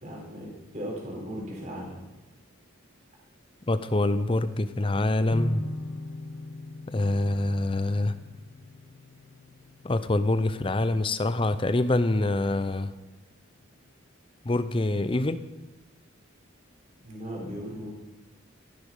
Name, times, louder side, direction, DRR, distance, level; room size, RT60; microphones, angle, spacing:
voice 1, 0.0-2.0 17.0-17.9, equal, 35° right, -3 dB, 4.1 m, -37 dB
voice 2, 3.7-5.6 6.9-8.1 9.8-12.9 14.4-15.4, left 2 dB, 25° left, 13 dB, 0.6 m, -25 dB
sound 1, 5.3-12.5, left 1 dB, 60° left, 1.6 m, -41 dB
14.5 x 11.0 x 5.3 m, 1.1 s
head